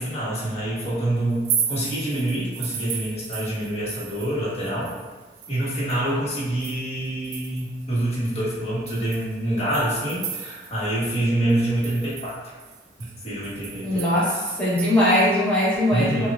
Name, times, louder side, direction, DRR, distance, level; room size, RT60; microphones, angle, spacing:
voice 1, 0.0-4.9 5.5-12.5 13.0-14.0 15.9-16.3, right 1 dB, 35° left, -8 dB, 1.2 m, -26 dB
sound 1, 1.3-4.4 4.6-7.8 8.3-8.4 8.9-10.8 11.1-11.2 11.5-14.9, right 8 dB, 60° right, 0.4 m, -34 dB
voice 2, 13.8-16.3, left 1 dB, 5° left, -9 dB, 1.0 m, -21 dB
5.9 x 2.3 x 2.4 m, 1.3 s
head